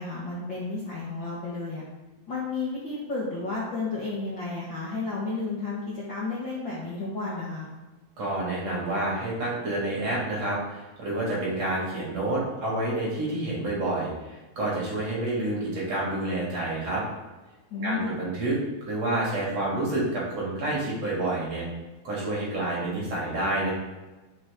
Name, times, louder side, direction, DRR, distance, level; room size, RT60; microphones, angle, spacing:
voice 1, 0.0-1.8 2.3-7.7 17.7-18.1, left 3 dB, 80° left, -6 dB, 1.0 m, -32 dB
voice 2, 8.2-17.0 17.8-18.6 18.8-21.7 22.0-23.7, right 2 dB, 40° right, -6 dB, 3.1 m, -28 dB
11.0 x 6.5 x 3.8 m, 1.1 s
omnidirectional pair, 5.0 m